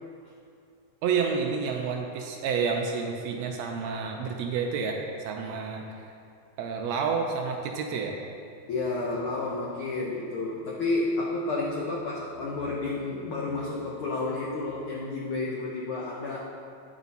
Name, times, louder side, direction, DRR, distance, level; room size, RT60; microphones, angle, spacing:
voice 1, 1.0-5.0 5.2-5.8 6.6-8.1, right 5 dB, 80° right, 2 dB, 1.6 m, -29 dB
voice 2, 8.7-16.4, left 3 dB, 80° left, -4 dB, 1.2 m, -31 dB
9.0 x 6.0 x 4.1 m, 2.5 s
omnidirectional pair, 3.4 m